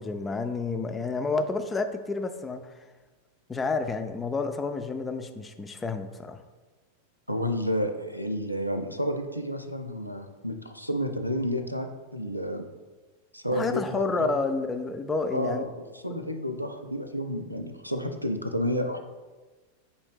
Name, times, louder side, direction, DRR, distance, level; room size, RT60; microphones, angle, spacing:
voice 1, 0.0-2.7 3.5-6.4 13.5-15.6, left 3 dB, 15° left, 8 dB, 0.3 m, -30 dB
voice 2, 7.3-11.9 12.1-12.7 13.3-14.3 15.3-19.0, equal, 90° right, 6 dB, 0.3 m, -30 dB
5.4 x 2.6 x 3.4 m, 1.3 s
figure-of-eight pair, 90°, 0 cm